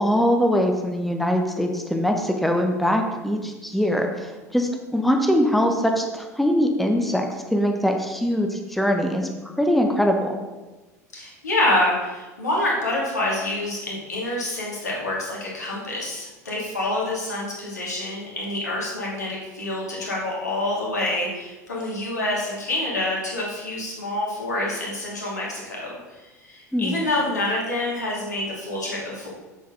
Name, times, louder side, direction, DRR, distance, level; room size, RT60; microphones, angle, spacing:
voice 1, 0.0-9.3 9.6-10.4 26.7-27.0, equal, ahead, 3 dB, 0.9 m, -22 dB
voice 2, 11.1-25.9 26.5-29.3, left 1 dB, 80° left, -3 dB, 2.3 m, -27 dB
7.7 x 6.9 x 3.9 m, 1.2 s
figure-of-eight pair, 75°, 9 cm